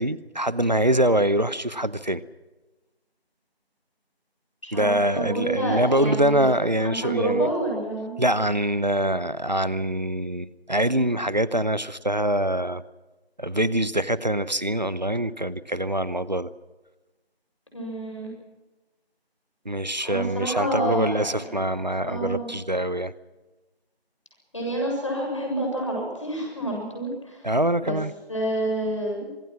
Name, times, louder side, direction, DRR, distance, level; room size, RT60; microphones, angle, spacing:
voice 1, 0.0-2.2 4.7-7.5 8.2-12.8 13.4-16.5 19.6-23.1 27.4-28.1, right 1 dB, 45° right, 17 dB, 0.9 m, -24 dB
voice 2, 4.7-6.6 6.8-8.2 17.7-18.3 20.0-21.7 22.0-22.6 24.5-27.5 27.8-28.0 28.3-29.2, right 1 dB, 30° left, 0 dB, 7.1 m, -28 dB
25.5 x 20.0 x 6.1 m, 1.1 s
figure-of-eight pair, 180°, 32 cm